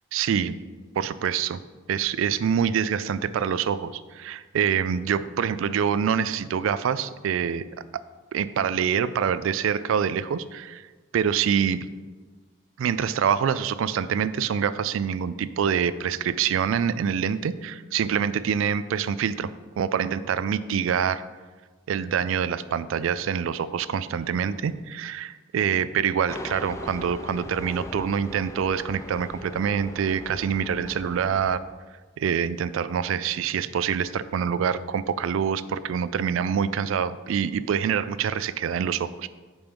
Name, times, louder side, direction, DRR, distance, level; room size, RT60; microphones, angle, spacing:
voice 1, 0.1-0.6 1.0-1.6 1.9-7.6 8.3-10.8 11.1-11.8 12.8-19.5 19.8-21.2 21.9-31.6 32.2-39.3, right 7 dB, 70° right, 15 dB, 0.3 m, -25 dB
sound 1, 26.3-31.6, left 1 dB, 15° left, 0.4 m, -39 dB
5.3 x 5.1 x 5.9 m, 1.4 s
head